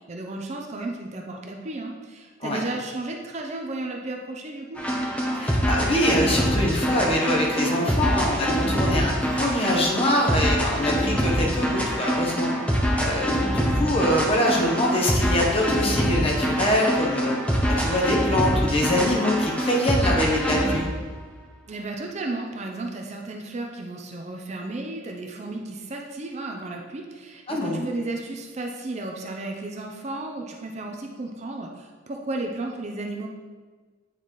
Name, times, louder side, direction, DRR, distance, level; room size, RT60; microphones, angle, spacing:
voice 1, 0.0-4.8 21.7-33.3, right 2 dB, 35° right, 2 dB, 0.5 m, -33 dB
sound 1, 4.8-20.9, equal, 5° left, 0.7 m, -24 dB
voice 2, 5.3-12.5 13.0-17.4 17.7-20.9 27.5-27.8, left 1 dB, 30° left, -1 dB, 1.0 m, -24 dB
9.1 x 4.1 x 3.1 m, 1.4 s
head